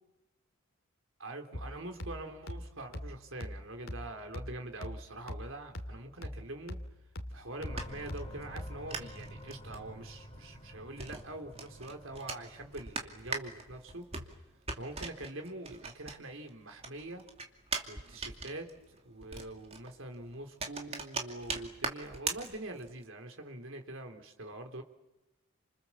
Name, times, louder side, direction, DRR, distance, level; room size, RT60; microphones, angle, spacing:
voice 1, 1.2-6.8 7.3-14.1 14.8-17.2 17.9-24.8, right 2 dB, 65° right, 5 dB, 3.5 m, -44 dB
sound 1, 1.5-9.0, left 1 dB, 65° left, 2.5 m, -44 dB
sound 2, 7.3-16.5 16.8-23.0, right 4 dB, 30° right, 2.6 m, -41 dB
sound 3, 7.6-13.9, equal, 20° left, 3.4 m, -50 dB
29.5 x 26.5 x 7.3 m, 0.98 s
head